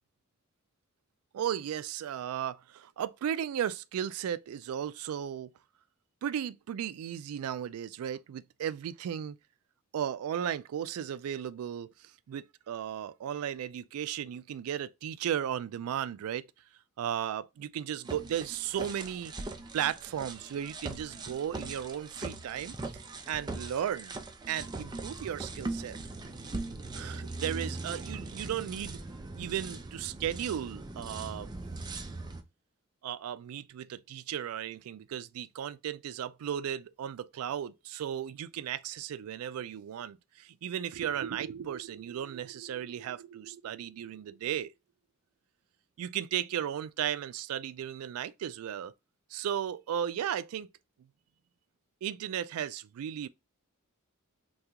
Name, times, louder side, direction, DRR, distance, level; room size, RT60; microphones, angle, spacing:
voice 1, 1.3-5.5 6.2-9.4 9.9-16.5 17.0-19.3 19.7-23.0 23.3-24.1 24.5-26.0 26.9-29.0 29.4-31.5 33.0-44.7 46.0-48.9 49.3-50.7 52.0-53.3, right 9 dB, 85° right, 0.3 m, -35 dB
sound 1, 18.1-32.4, right 2 dB, 20° right, 0.4 m, -40 dB
3.5 x 2.3 x 2.8 m
head